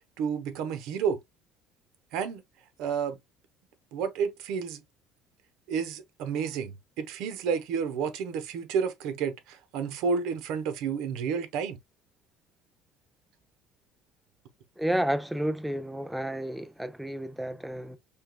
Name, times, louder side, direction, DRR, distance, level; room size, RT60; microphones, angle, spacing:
voice 1, 0.2-1.2 2.1-2.4 2.8-3.2 3.9-4.8 5.7-11.8, right 6 dB, 75° right, 1.0 m, -30 dB
voice 2, 14.8-18.0, right 1 dB, ahead, 0.4 m, -31 dB
5.6 x 2.4 x 2.3 m
cardioid pair, 150°, 0 cm